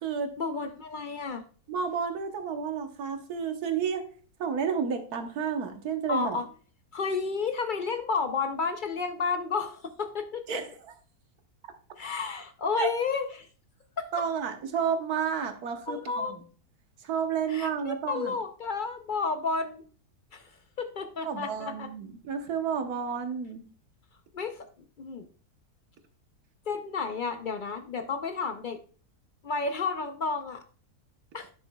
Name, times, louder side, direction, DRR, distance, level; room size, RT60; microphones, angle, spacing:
voice 1, 0.4-1.4 6.1-6.5 6.9-10.5 12.0-13.5 14.0-14.1 15.9-16.4 17.5-19.8 20.3-21.9 24.3-24.7 25.0-25.3 26.7-28.8 29.4-30.6 31.3-31.5, left 4 dB, 70° left, 7 dB, 0.4 m, -31 dB
voice 2, 1.7-4.0 4.4-6.4 10.5-10.7 12.8-12.9 14.1-16.4 17.0-18.4 21.2-23.6, right 6 dB, 75° right, 6 dB, 1.5 m, -31 dB
10.0 x 6.8 x 2.2 m, 0.41 s
omnidirectional pair, 1.7 m